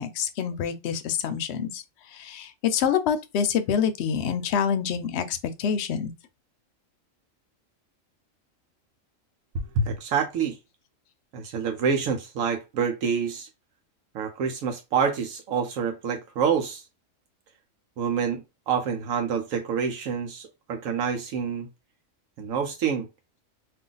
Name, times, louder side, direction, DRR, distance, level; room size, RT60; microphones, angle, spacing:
voice 1, 0.0-1.8 2.1-6.1, left 7 dB, 65° left, 0.7 m, -26 dB
voice 2, 9.5-10.6 11.3-13.5 14.1-16.8 18.0-18.4 18.7-21.7 22.4-23.1, right 6 dB, 80° right, 1.0 m, -27 dB
2.5 x 2.4 x 3.8 m
omnidirectional pair, 1.4 m